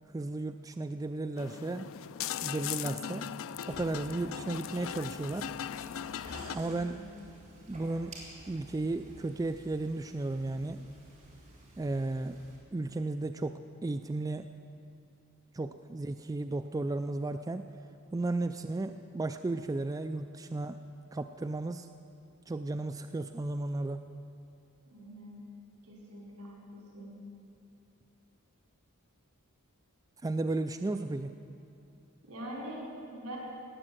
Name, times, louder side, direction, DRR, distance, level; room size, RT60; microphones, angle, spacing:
voice 1, 0.1-1.9 2.4-3.3 3.7-5.5 6.5-7.0 7.7-8.2 8.5-10.9 11.8-12.4 12.7-14.5 15.5-17.7 18.1-20.8 21.1-21.9 22.5-24.0 30.2-31.3, right 2 dB, 15° right, 7 dB, 0.3 m, -34 dB
sound 1, 1.4-6.6, left 9 dB, 60° left, 0.4 m, -39 dB
sound 2, 3.7-12.6, right 1 dB, 30° right, 3.7 m, -52 dB
voice 2, 6.6-7.0 24.9-25.4 25.9-26.6 26.9-27.1 32.2-33.4, right 1 dB, 75° right, -3 dB, 4.9 m, -44 dB
18.0 x 9.0 x 7.9 m, 2.6 s
head